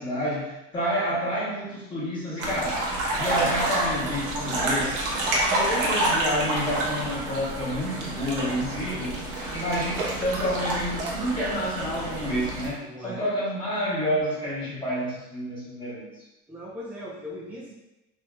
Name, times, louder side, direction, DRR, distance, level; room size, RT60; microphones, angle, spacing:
voice 1, 0.0-2.8 3.1-5.0 5.4-9.2 9.5-16.1, equal, 25° left, -8 dB, 1.2 m, -29 dB
sound 1, 2.4-12.7, right 1 dB, 60° right, 0.8 m, -28 dB
voice 2, 12.8-13.3 16.5-17.7, equal, 10° right, -6 dB, 0.6 m, -39 dB
3.0 x 2.7 x 2.3 m, 0.95 s
cardioid pair, 150°, 20 cm